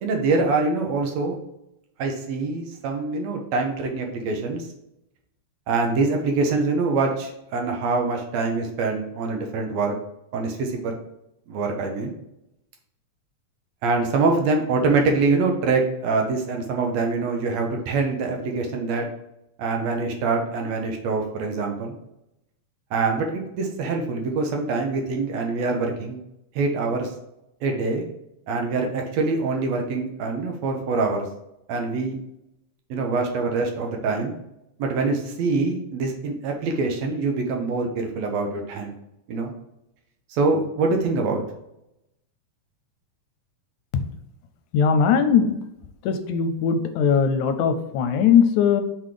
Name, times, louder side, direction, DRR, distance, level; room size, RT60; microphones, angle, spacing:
voice 1, 0.0-1.4 2.0-4.7 5.7-10.0 10.3-10.9 11.5-12.1 13.8-19.1 19.6-22.0 22.9-26.2 26.6-27.1 27.6-28.0 28.5-31.3 31.7-32.2 32.9-34.4 34.8-39.0 39.3-39.5 40.3-41.4, right 3 dB, 70° right, 2 dB, 1.9 m, -24 dB
voice 2, 44.7-45.7 46.0-48.8, left 7 dB, 80° left, 9 dB, 2.0 m, -20 dB
5.9 x 3.6 x 4.8 m, 0.84 s
omnidirectional pair, 3.5 m